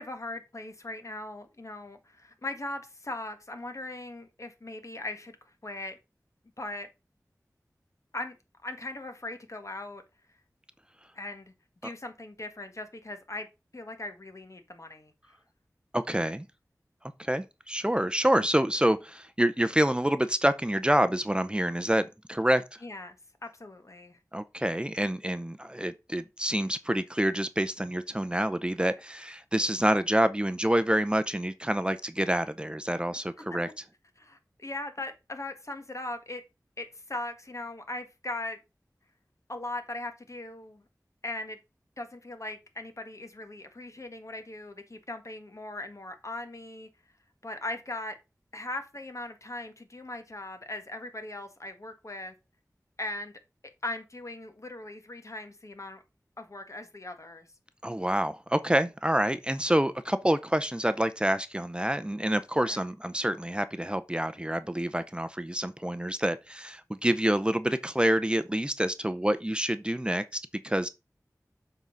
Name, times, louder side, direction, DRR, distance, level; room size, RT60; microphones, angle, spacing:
voice 1, 0.0-5.4 5.6-6.0 6.6-6.9 8.1-8.3 8.6-10.0 11.1-11.5 11.8-13.5 13.7-15.1 22.8-23.1 23.4-24.2 33.5-33.6 34.2-36.4 36.8-38.6 39.5-40.8 41.2-41.6 42.0-46.9 47.4-48.1 48.5-52.3 53.0-53.3 53.8-56.0 56.4-57.5 62.6-62.8, left 2 dB, 50° left, 1.5 m, -39 dB
voice 2, 15.9-16.5 17.2-22.6 24.3-33.7 57.8-70.9, right 1 dB, 15° right, 0.6 m, -27 dB
7.2 x 3.9 x 5.5 m
wide cardioid pair, 50°, 6 cm